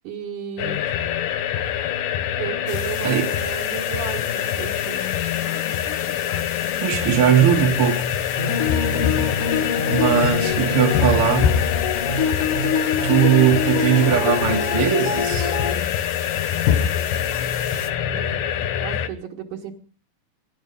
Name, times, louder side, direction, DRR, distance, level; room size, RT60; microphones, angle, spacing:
voice 1, 0.0-0.9 2.4-5.0 18.1-18.5 18.8-19.8, right 8 dB, 75° right, 3.3 m, -33 dB
sound 1, 0.6-19.1, left 9 dB, 80° left, 2.8 m, -24 dB
sound 2, 2.7-17.9, left 8 dB, 65° left, 2.8 m, -37 dB
voice 2, 6.8-8.0 9.9-11.6 13.0-15.5, right 10 dB, 55° right, 1.8 m, -19 dB
sound 3, 8.4-15.7, left 5 dB, 50° left, 2.7 m, -25 dB
24.5 x 11.0 x 5.3 m
omnidirectional pair, 3.8 m